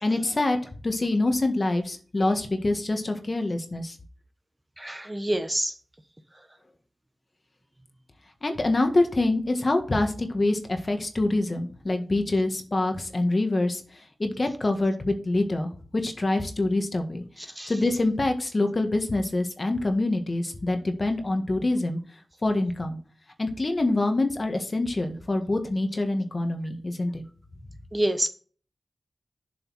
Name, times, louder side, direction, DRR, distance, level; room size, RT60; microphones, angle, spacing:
voice 1, 0.0-0.6 0.8-4.0 8.4-13.8 14.2-17.2 17.7-22.0 22.4-23.0 23.4-27.2, left 2 dB, 40° left, 5 dB, 1.7 m, -25 dB
voice 2, 4.8-5.8 17.4-17.7 27.9-28.3, right 1 dB, 15° right, 8 dB, 1.0 m, -27 dB
7.5 x 5.5 x 5.7 m, 0.40 s
wide cardioid pair, 70°, 0 cm